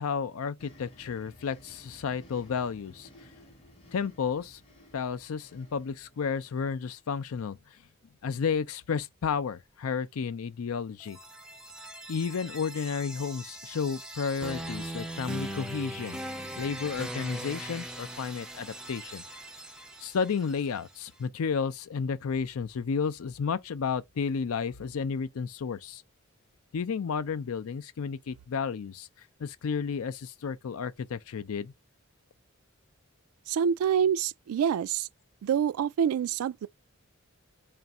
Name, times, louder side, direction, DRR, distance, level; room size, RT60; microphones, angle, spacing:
voice 1, 0.0-3.1 3.9-4.6 4.9-7.6 8.2-11.2 12.1-16.2 16.6-19.2 20.0-26.0 26.7-29.1 29.4-31.7, left 6 dB, 85° left, 0.4 m, -32 dB
sound 1, 0.6-7.0, equal, 30° left, 0.8 m, -55 dB
sound 2, 11.0-20.9, right 1 dB, 5° right, 0.3 m, -40 dB
voice 2, 33.5-35.1 35.4-36.7, right 8 dB, 90° right, 0.3 m, -26 dB
3.4 x 2.5 x 4.0 m
head